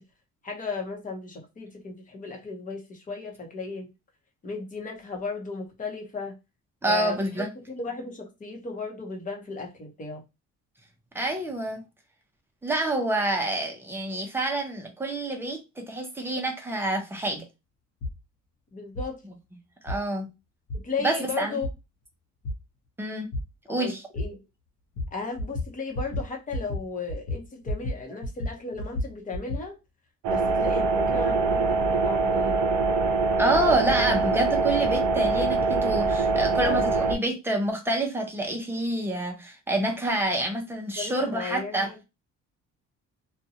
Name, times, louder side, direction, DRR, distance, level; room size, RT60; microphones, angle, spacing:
voice 1, 0.4-3.9 4.4-6.4 6.9-10.2 18.7-19.2 20.7-21.7 23.7-24.4 25.1-29.8 30.3-32.8 34.9-35.3 36.5-37.0 41.0-42.0, left 4 dB, 25° left, 0.9 m, -35 dB
voice 2, 6.8-7.5 11.1-11.8 12.6-17.4 19.8-20.3 21.0-21.6 23.0-23.3 23.7-24.0 33.4-41.9, right 1 dB, 10° right, 0.6 m, -27 dB
sound 1, 18.0-18.2 18.9-19.1 19.9-20.0 20.7-20.8 21.6-21.7 22.4-22.5 23.3-23.4 24.1-24.3 25.0-25.1 25.4-25.7 25.9-26.2 26.5-26.8 27.1-28.0 28.2-29.6, left 1 dB, 75° left, 0.9 m, -31 dB
sound 2, 30.2-37.2, right 3 dB, 75° right, 0.6 m, -24 dB
2.6 x 2.3 x 2.7 m
cardioid pair, 140°, 29 cm